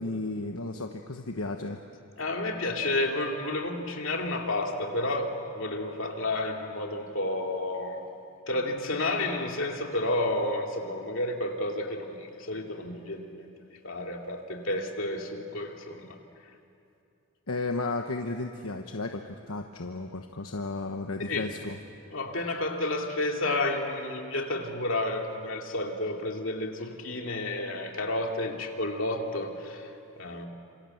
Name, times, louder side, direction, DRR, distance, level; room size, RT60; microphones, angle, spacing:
voice 1, 0.0-1.8 17.5-21.8, left 2 dB, 80° left, 4 dB, 1.2 m, -34 dB
voice 2, 2.2-8.0 8.5-16.2 21.2-21.5 22.1-29.9 30.2-30.5, left 2 dB, 60° left, 2 dB, 2.7 m, -31 dB
27.0 x 27.0 x 8.0 m, 2.7 s
head